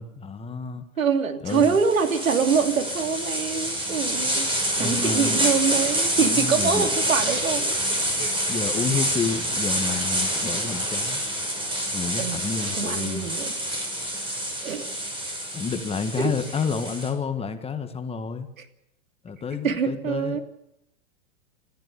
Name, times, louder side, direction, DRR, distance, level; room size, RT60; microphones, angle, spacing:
voice 1, 0.0-0.8 1.4-1.7 4.8-5.4 6.2-6.9 8.5-11.2 11.9-13.3 15.5-18.5 19.2-20.4, left 5 dB, 15° left, 9 dB, 1.8 m, -30 dB
voice 2, 1.0-8.4 8.9-9.0 12.2-12.4 12.8-13.5 14.6-14.9 16.2-16.3 18.6-18.7 19.6-20.4, right 6 dB, 85° right, 7 dB, 2.9 m, -25 dB
sound 1, 1.5-17.1, right 1 dB, 15° right, 6.5 m, -27 dB
29.0 x 14.5 x 7.0 m, 0.81 s
hypercardioid pair, 120°, 40 cm